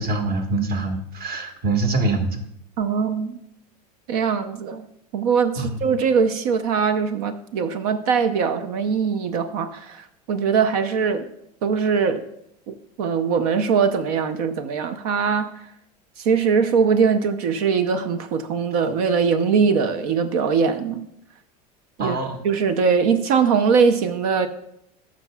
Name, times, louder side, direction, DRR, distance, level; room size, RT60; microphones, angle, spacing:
voice 1, 0.0-2.4 5.6-5.9 22.0-22.4, right 2 dB, 45° right, 3 dB, 1.7 m, -24 dB
voice 2, 2.8-3.4 4.1-4.9 5.1-11.3 11.6-12.2 12.7-15.5 16.2-21.0 22.0-22.2 22.4-24.5, right 6 dB, 65° right, 10 dB, 0.7 m, -21 dB
13.0 x 6.2 x 2.3 m, 0.77 s
hypercardioid pair, 90°, 21 cm